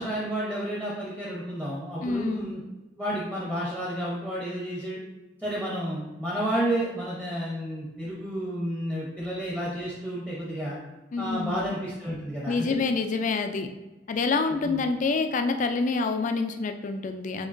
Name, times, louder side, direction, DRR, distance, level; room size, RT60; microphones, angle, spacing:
voice 1, 0.0-2.6 3.0-5.0 5.4-10.8 11.2-12.7 14.6-14.8, right 1 dB, 10° right, -6 dB, 0.8 m, -31 dB
voice 2, 2.0-2.4 11.1-11.7 12.5-13.7 14.1-17.5, left 4 dB, 45° left, 7 dB, 0.4 m, -27 dB
5.0 x 3.7 x 2.6 m, 1.1 s
head